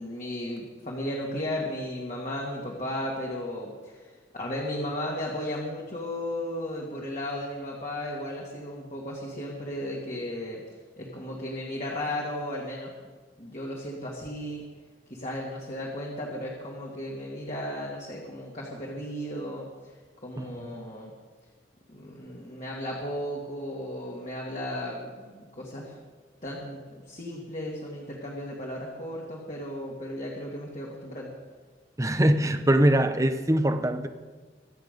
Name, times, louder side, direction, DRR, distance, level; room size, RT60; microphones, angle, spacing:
voice 1, 0.0-12.9 13.4-14.6 15.1-20.0 20.2-21.1 21.9-25.9 26.4-31.3, left 1 dB, 40° left, -3 dB, 2.2 m, -35 dB
voice 2, 20.4-20.7 32.0-34.1, right 1 dB, 15° right, 8 dB, 0.8 m, -23 dB
24.5 x 8.5 x 5.3 m, 1.4 s
head